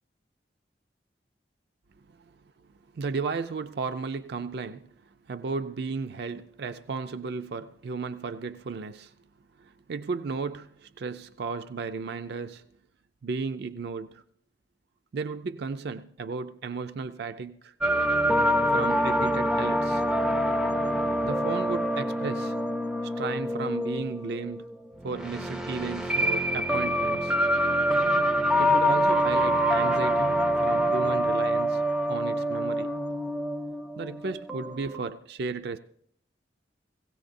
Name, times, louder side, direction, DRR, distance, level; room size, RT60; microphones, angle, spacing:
voice 1, 2.9-9.1 9.6-12.7 13.2-14.2 15.1-17.7 18.7-20.0 21.2-22.6 23.0-24.6 25.0-27.4 28.6-31.8 32.1-32.9 34.0-35.8, right 4 dB, 60° right, 0.4 m, -34 dB
sound 1, 17.8-35.1, equal, 5° right, 0.4 m, -26 dB
17.5 x 16.5 x 2.6 m
head